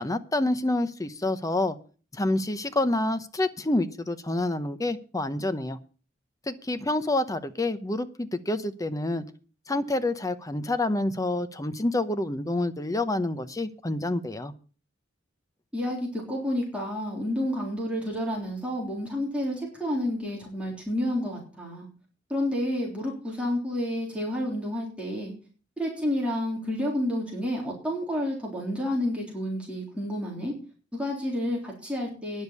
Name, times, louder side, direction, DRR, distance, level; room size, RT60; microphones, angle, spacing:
voice 1, 0.0-1.8 2.1-5.8 6.5-9.2 9.7-14.5, left 2 dB, 20° left, 10 dB, 0.8 m, -28 dB
voice 2, 15.7-21.9 22.3-25.3 25.8-30.5 30.9-32.4, left 1 dB, 5° right, -3 dB, 3.6 m, -30 dB
10.0 x 7.3 x 8.1 m, 0.39 s
head